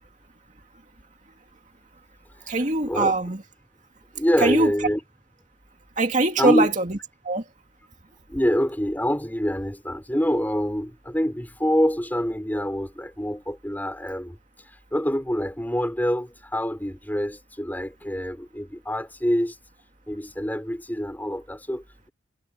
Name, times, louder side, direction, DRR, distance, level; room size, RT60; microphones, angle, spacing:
voice 1, 2.5-3.4 4.4-4.7 6.0-7.0 7.2-7.4, right 2 dB, 40° right, 2.5 m, -22 dB
voice 2, 4.1-5.0 6.4-6.7 8.3-14.4 14.9-19.5 20.1-22.1, equal, 10° left, 4.9 m, -26 dB
head